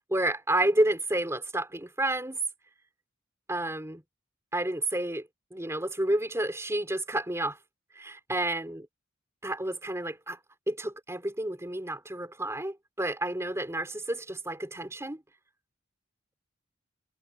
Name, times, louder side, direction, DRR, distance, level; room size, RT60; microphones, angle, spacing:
voice 1, 0.1-2.4 3.5-4.0 4.5-7.6 7.9-8.9 9.4-10.4 10.7-15.2, right 1 dB, 15° right, 3.6 m, -30 dB
head